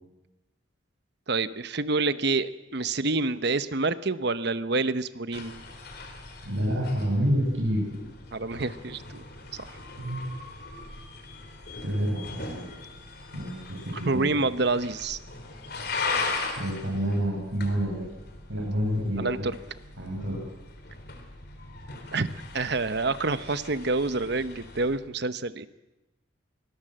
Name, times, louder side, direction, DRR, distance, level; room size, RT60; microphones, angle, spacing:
voice 1, 1.3-5.6 8.3-9.2 9.6-9.7 14.1-15.2 19.2-19.6 22.1-22.3 22.5-25.7, right 3 dB, 55° right, 13 dB, 1.0 m, -27 dB
sound 1, 5.3-25.0, left 3 dB, 50° left, 3.8 m, -39 dB
voice 2, 6.4-8.0 10.0-10.3 11.8-12.5 13.3-14.4 16.6-18.0 18.5-19.2 20.0-20.4, equal, 80° right, -3 dB, 7.1 m, -28 dB
24.0 x 19.0 x 7.7 m, 1.0 s
head